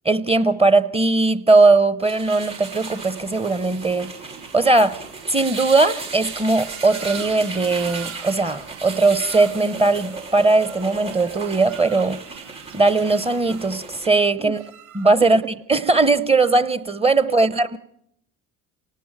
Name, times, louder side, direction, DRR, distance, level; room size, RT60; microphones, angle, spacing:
voice 1, 0.0-4.1 4.5-5.0 5.3-12.2 12.7-14.6 14.9-15.4 15.7-17.8, right 3 dB, 15° right, 0.9 m, -19 dB
sound 1, 2.0-14.1, right 4 dB, 85° right, 5.6 m, -35 dB
sound 2, 6.2-15.4, right 10 dB, 45° right, 2.9 m, -46 dB
voice 2, 15.1-15.5 17.2-17.8, right 7 dB, 60° right, 1.2 m, -35 dB
28.5 x 19.0 x 4.8 m
figure-of-eight pair, 55°, 41 cm